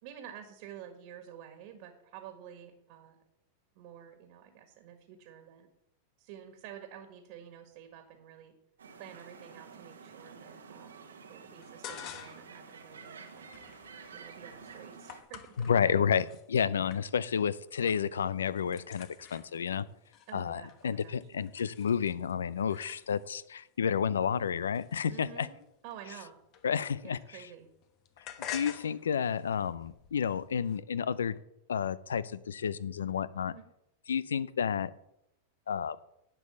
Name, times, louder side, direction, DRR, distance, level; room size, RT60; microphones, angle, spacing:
voice 1, 0.0-3.2 3.7-5.7 6.2-8.5 9.0-11.0 11.3-13.5 14.1-16.0 20.3-21.5 25.1-26.4 27.0-27.7 33.5-33.7, right 9 dB, 55° right, 7 dB, 1.6 m, -50 dB
sound 1, 8.8-15.2, right 5 dB, 90° right, 1.3 m, -50 dB
sound 2, 11.6-12.6 12.9-16.4 16.9-17.4 17.7-18.1 18.4-23.4 24.1-27.3 27.6-30.8, left 10 dB, 45° left, 1.1 m, -49 dB
voice 2, 15.6-19.9 20.3-25.5 26.6-27.2 28.5-31.4 31.7-33.5 34.1-34.9 35.7-36.0, left 7 dB, 85° left, 19 dB, 0.5 m, -30 dB
10.5 x 5.6 x 7.1 m, 0.81 s
hypercardioid pair, 105°, 0 cm